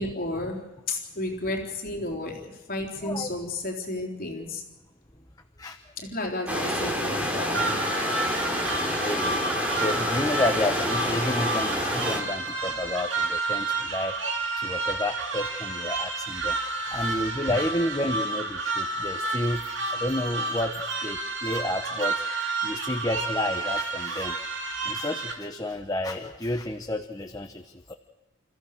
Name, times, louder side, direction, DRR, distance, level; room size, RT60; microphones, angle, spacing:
voice 1, 0.0-4.6 6.0-7.8, left 2 dB, 45° left, 1 dB, 3.7 m, -32 dB
voice 2, 3.0-3.3 5.6-5.8 9.0-9.4 9.7-14.2 14.6-19.6 19.9-20.8 21.0-22.2 22.6-24.5 24.8-27.9, left 1 dB, 20° left, 5 dB, 1.0 m, -30 dB
sound 1, 6.5-12.2, equal, 5° right, 3.0 m, -28 dB
sound 2, 7.5-25.3, right 3 dB, 65° right, 3.1 m, -30 dB
29.5 x 15.0 x 6.7 m, 1.1 s
head